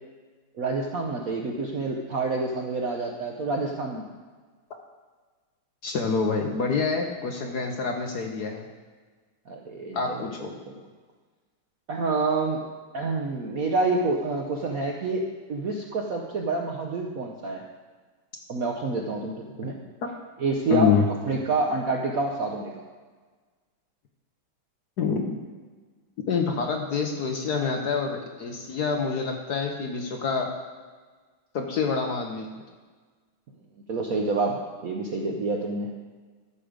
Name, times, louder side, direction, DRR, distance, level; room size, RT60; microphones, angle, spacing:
voice 1, 0.6-4.0 9.5-10.8 11.9-12.6 12.9-15.2 15.5-17.6 18.5-19.8 20.4-20.9 21.3-22.7 33.9-35.9, right 3 dB, 65° right, 1 dB, 0.9 m, -28 dB
voice 2, 5.8-8.7 9.9-10.5 20.7-21.0 25.0-25.4 26.3-30.5 31.5-32.5, left 5 dB, 60° left, 3 dB, 1.1 m, -26 dB
12.5 x 6.4 x 5.0 m, 1.4 s
omnidirectional pair, 2.4 m